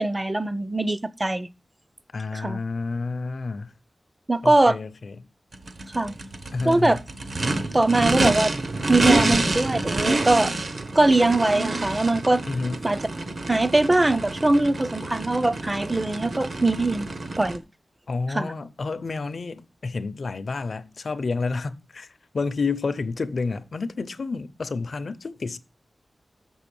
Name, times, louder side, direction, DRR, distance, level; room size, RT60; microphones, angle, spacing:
voice 1, 0.0-1.5 2.3-2.6 4.3-4.8 5.9-6.1 6.7-7.0 7.7-8.5 8.9-10.5 11.0-12.4 12.8-13.0 13.5-17.1 17.4-17.6 18.3-18.5, right 2 dB, 20° right, 0.5 m, -21 dB
voice 2, 2.1-3.8 4.4-5.3 6.5-7.0 9.2-9.5 12.5-12.8 18.1-25.6, left 4 dB, 65° left, 0.6 m, -30 dB
Race car auto racing / Idling / Accelerating revving vroom, 5.5-17.6, right 2 dB, 65° right, 1.0 m, -28 dB
6.6 x 6.2 x 6.8 m
wide cardioid pair, 100°, 0 cm